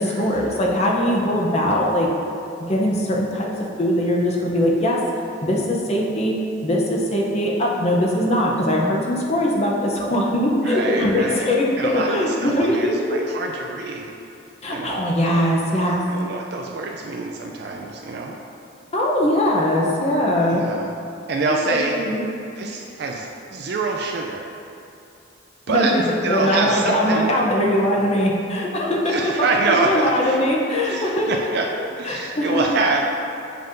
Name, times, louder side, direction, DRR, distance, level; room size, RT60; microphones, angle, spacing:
voice 1, 0.0-2.1 2.7-3.5 3.8-5.0 5.4-13.3 14.6-16.0 18.9-20.7 21.5-21.6 22.1-22.2 25.7-31.5 32.0-32.6, left 1 dB, 30° left, -2 dB, 0.6 m, -21 dB
voice 2, 10.6-14.1 14.7-15.4 16.1-18.4 20.5-20.9 21.3-21.9 22.6-24.5 25.7-26.0 26.2-27.3 29.1-30.4 30.8-31.7 32.0-33.0, right 3 dB, 55° right, 1 dB, 0.3 m, -25 dB
7.6 x 5.3 x 2.6 m, 2.6 s
head